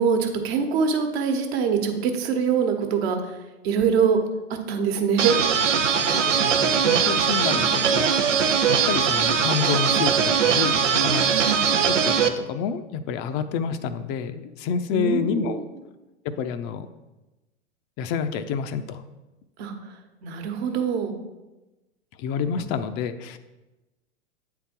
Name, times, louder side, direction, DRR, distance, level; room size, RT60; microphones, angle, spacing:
voice 1, 0.0-3.4 3.6-4.2 4.5-5.4 7.5-7.8 11.2-11.7 14.9-15.6 19.6-19.7 20.2-21.2 22.6-22.7, right 6 dB, 55° right, 4 dB, 1.2 m, -24 dB
sound 1, 5.2-12.3, right 7 dB, 90° right, 0.6 m, -21 dB
voice 2, 5.9-11.3 11.8-15.6 16.2-16.9 18.0-19.0 22.2-23.4, left 7 dB, 35° left, 11 dB, 0.5 m, -29 dB
8.4 x 3.8 x 4.4 m, 1.1 s
hypercardioid pair, 105°, 36 cm